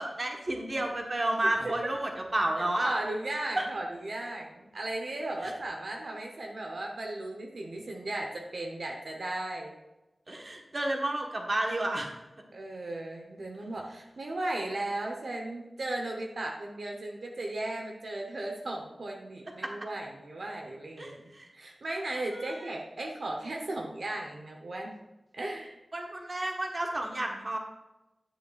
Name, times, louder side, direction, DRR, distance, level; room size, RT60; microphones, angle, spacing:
voice 1, 0.0-3.0 3.6-3.7 10.3-12.1 19.6-19.7 21.0-21.5 22.3-22.5 25.9-27.6, right 1 dB, 45° right, 1 dB, 1.2 m, -31 dB
voice 2, 1.4-1.9 2.8-9.8 12.5-24.9 25.3-25.8, right 2 dB, 75° right, 1 dB, 1.0 m, -36 dB
10.0 x 7.9 x 2.5 m, 0.98 s
wide cardioid pair, 60°, 0 cm